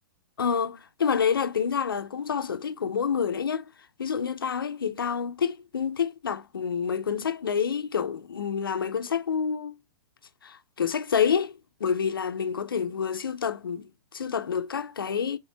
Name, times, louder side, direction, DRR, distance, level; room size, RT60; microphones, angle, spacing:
voice 1, 0.4-3.7 4.0-9.7 10.4-15.4, left 7 dB, 90° left, 0.6 m, -28 dB
4.3 x 3.5 x 3.3 m
hypercardioid pair, 125°, 11 cm